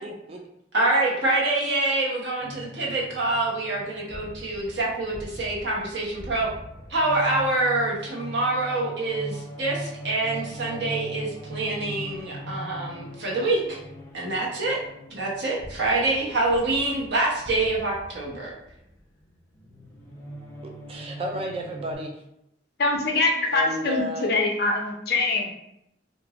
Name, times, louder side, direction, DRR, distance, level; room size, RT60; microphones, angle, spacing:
voice 1, 0.0-0.4 20.9-22.1 23.5-24.3, equal, 35° right, 1 dB, 0.3 m, -32 dB
voice 2, 0.7-6.5 6.9-13.8 14.1-14.8 15.1-18.5, right 2 dB, 80° right, -4 dB, 1.0 m, -26 dB
sound 1, 2.4-21.9, right 1 dB, 15° left, 0.6 m, -40 dB
voice 3, 22.8-25.5, left 2 dB, 60° left, 1 dB, 0.6 m, -24 dB
2.6 x 2.5 x 2.9 m, 0.80 s
head